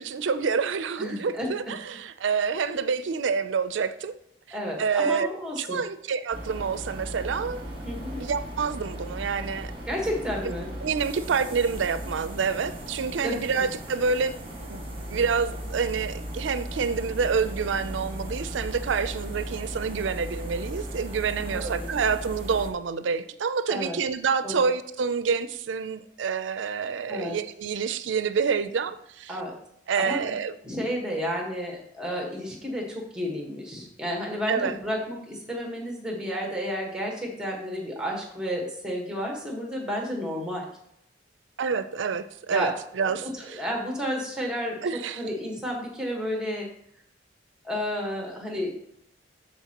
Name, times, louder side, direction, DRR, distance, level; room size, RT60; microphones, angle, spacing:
voice 1, 0.0-4.1 4.5-5.3 5.6-7.6 8.2-9.7 10.4-10.5 10.8-14.3 14.6-14.8 15.1-29.4 29.9-30.5 34.5-34.7 41.6-43.6 44.8-45.2, right 5 dB, 80° right, 0.4 m, -27 dB
voice 2, 1.0-1.5 2.6-2.8 4.5-5.8 7.8-8.2 9.9-10.7 13.2-13.7 21.5-21.9 23.7-24.0 24.4-24.6 27.1-27.4 29.3-29.6 30.0-30.2 30.6-40.7 42.5-44.8 45.2-46.7 47.6-48.7, equal, 5° right, 1.3 m, -31 dB
sound 1, 6.3-22.7, equal, 30° right, 1.5 m, -37 dB
13.0 x 4.3 x 2.9 m
head